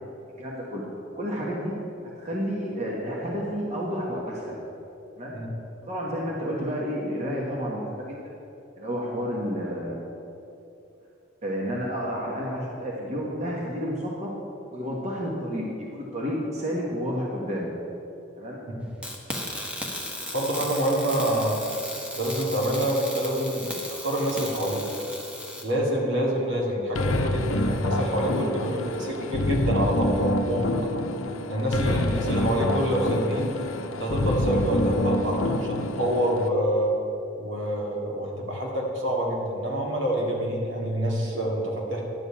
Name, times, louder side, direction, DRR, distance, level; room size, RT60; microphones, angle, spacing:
voice 1, 0.4-0.8 1.2-1.7 2.0-4.6 5.2-5.4 5.8-8.3 8.8-10.0 11.4-14.3 14.7-17.7 18.3-18.6 31.8-32.0, equal, 30° right, -4 dB, 1.4 m, -30 dB
sound 1, 19.0-25.6, left 1 dB, 5° right, 1.0 m, -36 dB
voice 2, 20.3-21.6 22.2-24.8 25.6-30.7 31.5-33.5 34.0-36.9 37.4-42.0, right 1 dB, 65° right, -2 dB, 2.1 m, -26 dB
sound 2, 26.9-36.5, left 1 dB, 80° left, 0.7 m, -27 dB
11.0 x 5.4 x 8.5 m, 2.8 s
head